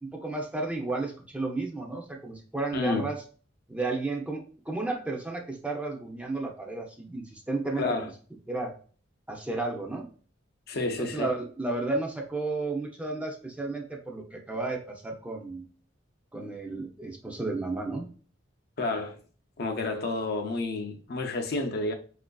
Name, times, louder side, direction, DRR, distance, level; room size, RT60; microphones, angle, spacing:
voice 1, 0.0-3.2 3.7-8.1 8.5-8.7 9.3-10.1 11.1-15.7 16.3-18.1, right 2 dB, 5° right, 0.4 m, -33 dB
voice 2, 2.7-3.1 7.8-8.1 10.7-11.3 18.8-19.2 19.6-21.9, left 2 dB, 55° left, 0.5 m, -30 dB
4.4 x 2.5 x 2.2 m
head